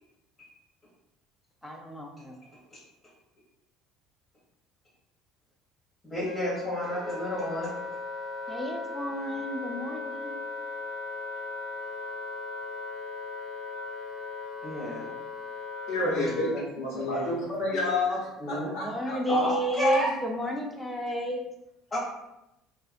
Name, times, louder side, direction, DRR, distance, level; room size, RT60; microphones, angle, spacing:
voice 1, 1.6-2.4 8.5-10.4 18.5-21.4, equal, 5° left, 1 dB, 0.5 m, -32 dB
voice 2, 6.1-7.7 14.6-15.1 16.0-17.3 18.4-18.7 19.3-20.1 21.9-22.0, left 1 dB, 25° left, -9 dB, 0.9 m, -31 dB
Wind instrument woodwind instrument, 6.2-16.5, left 3 dB, 55° left, 0.8 m, -37 dB
voice 3, 15.9-16.5 16.8-19.5, left 2 dB, 70° left, -5 dB, 1.1 m, -30 dB
2.7 x 2.4 x 2.5 m, 0.90 s
cardioid pair, 115°, 0 cm